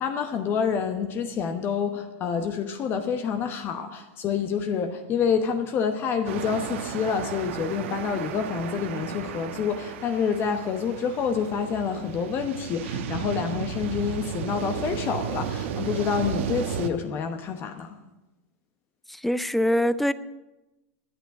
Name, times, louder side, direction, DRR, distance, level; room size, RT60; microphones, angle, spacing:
voice 1, 0.0-18.0, left 6 dB, 30° left, 1.0 m, -28 dB
sound 1, 6.3-16.9, right 8 dB, 70° right, 1.1 m, -34 dB
voice 2, 19.1-20.1, equal, ahead, 0.4 m, -23 dB
11.0 x 9.4 x 8.0 m
supercardioid pair, 135°, 7 cm